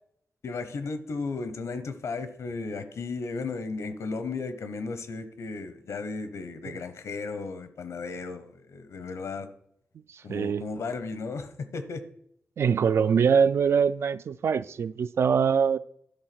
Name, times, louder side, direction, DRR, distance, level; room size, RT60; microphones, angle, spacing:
voice 1, 0.4-9.5 10.2-12.0, left 4 dB, 90° left, 1.0 m, -35 dB
voice 2, 10.3-10.6 12.6-15.8, right 6 dB, 65° right, 0.3 m, -23 dB
11.0 x 3.9 x 6.0 m
wide cardioid pair, 135°, 5 cm